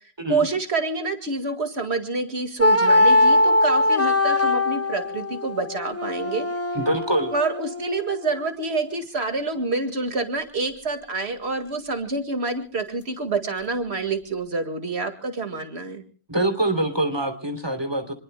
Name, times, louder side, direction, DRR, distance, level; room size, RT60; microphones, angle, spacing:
voice 1, 0.3-6.5 7.3-16.0, right 3 dB, 85° right, 7 dB, 2.3 m, -27 dB
sound 1, 2.6-8.4, left 2 dB, 15° left, 1.0 m, -21 dB
voice 2, 6.7-7.3 16.3-18.1, right 1 dB, 25° right, 7 dB, 3.2 m, -24 dB
27.0 x 21.0 x 2.2 m, 0.41 s
omnidirectional pair, 1.1 m